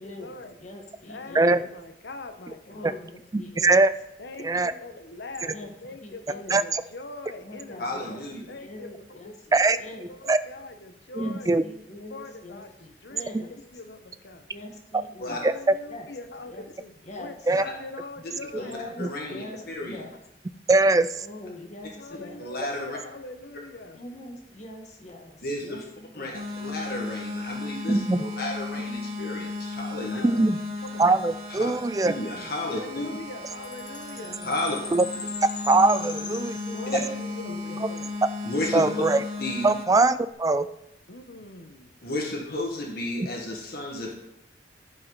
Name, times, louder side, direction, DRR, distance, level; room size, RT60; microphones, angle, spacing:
voice 1, 0.0-0.6 1.1-2.9 4.2-8.2 8.5-11.6 12.1-12.7 13.0-14.5 15.3-19.7 20.1-20.2 22.0-24.0 30.0-30.5 30.8-31.0 31.7-31.8 32.5-34.4 36.7-38.1 41.1-41.9, left 3 dB, 75° left, 7 dB, 1.1 m, -42 dB
voice 2, 0.6-1.6 2.7-3.8 5.5-5.7 6.0-6.6 7.4-10.1 11.2-13.5 14.5-15.4 15.9-16.0 16.5-16.6 17.0-17.3 18.6-20.1 21.2-22.4 23.9-26.4 31.0-31.2 32.1-32.5 34.2-34.5 35.8-36.0 36.3-37.8 38.8-39.0, left 1 dB, 40° left, 1 dB, 1.6 m, -43 dB
voice 3, 3.3-3.9 4.4-4.7 6.5-6.8 9.5-9.8 10.3-10.4 11.2-11.6 15.4-15.5 17.5-17.6 19.0-19.1 20.7-21.3 27.9-28.2 30.2-30.6 31.0-32.2 34.9-35.0 35.7-36.5 38.7-39.2 39.6-40.7, right 3 dB, 20° right, 14 dB, 0.3 m, -21 dB
voice 4, 7.8-8.4 15.2-15.4 17.6-17.7 18.6-18.7 19.0-20.0 22.4-23.0 25.4-25.8 26.1-30.2 31.5-31.7 32.0-33.1 34.4-34.8 36.9-37.0 38.4-38.8 39.4-39.7 42.0-44.2, left 1 dB, 60° left, -1 dB, 1.7 m, -32 dB
sound 1, 26.3-39.9, left 3 dB, 55° right, 1.5 m, -35 dB
Chime, 33.6-37.3, left 6 dB, 25° left, 0.8 m, -40 dB
15.0 x 5.7 x 4.1 m, 0.84 s
head